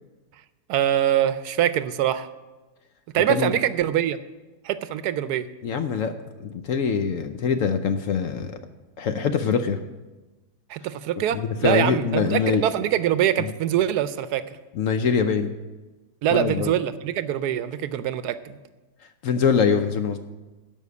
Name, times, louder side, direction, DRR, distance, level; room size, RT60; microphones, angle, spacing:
voice 1, 0.7-2.3 3.1-4.2 4.6-5.5 10.7-14.4 16.2-18.6, right 11 dB, 75° right, 14 dB, 1.1 m, -24 dB
voice 2, 5.6-6.1 6.4-8.5 9.0-9.8 11.3-12.6 13.4-13.5 14.8-15.5 16.3-16.7 19.2-20.2, left 6 dB, 65° left, 8 dB, 0.9 m, -23 dB
12.0 x 5.4 x 8.4 m, 1.2 s
omnidirectional pair, 1.8 m